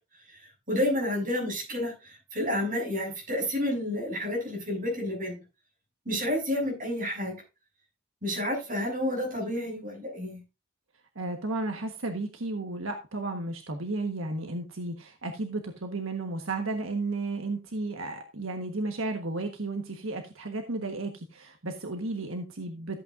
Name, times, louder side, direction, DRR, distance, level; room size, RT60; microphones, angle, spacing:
voice 1, 0.7-5.4 6.1-7.4 8.2-10.4, left 1 dB, 45° right, -1 dB, 6.9 m, -30 dB
voice 2, 11.1-23.0, right 2 dB, 85° right, 5 dB, 1.4 m, -33 dB
14.5 x 8.2 x 2.6 m, 0.29 s
head